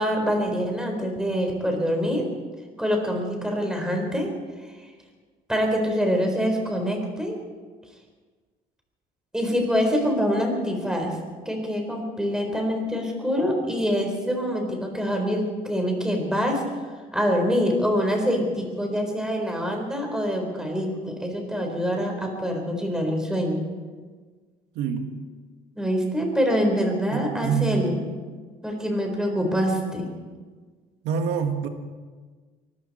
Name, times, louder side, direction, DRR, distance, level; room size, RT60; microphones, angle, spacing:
voice 1, 0.0-2.3 2.8-4.3 5.5-7.4 9.3-11.2 11.5-16.6 17.1-23.6 25.8-28.1 28.6-30.1, equal, 5° right, 2 dB, 4.3 m, -25 dB
voice 2, 24.7-25.2 27.1-27.8 31.0-31.7, right 7 dB, 90° right, 6 dB, 1.7 m, -26 dB
23.5 x 14.0 x 4.4 m, 1.5 s
cardioid pair, 110°, 17 cm